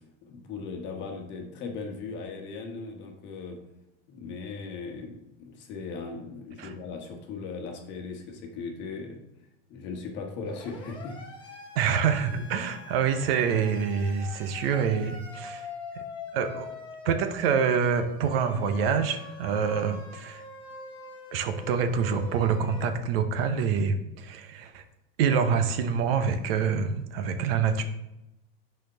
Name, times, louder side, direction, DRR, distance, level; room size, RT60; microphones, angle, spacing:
voice 1, 0.2-3.6 4.1-9.2 9.7-11.2 11.4-11.6 12.3-12.4, left 4 dB, 40° left, 3 dB, 1.2 m, -38 dB
Siren, 10.5-22.8, left 3 dB, 15° left, 1.2 m, -43 dB
voice 2, 11.8-15.7 15.9-16.0 16.3-16.7 17.0-20.4 21.3-24.8 25.2-27.8, right 6 dB, 75° right, 8 dB, 0.9 m, -26 dB
6.5 x 4.4 x 5.5 m, 0.90 s
supercardioid pair, 160°, 30 cm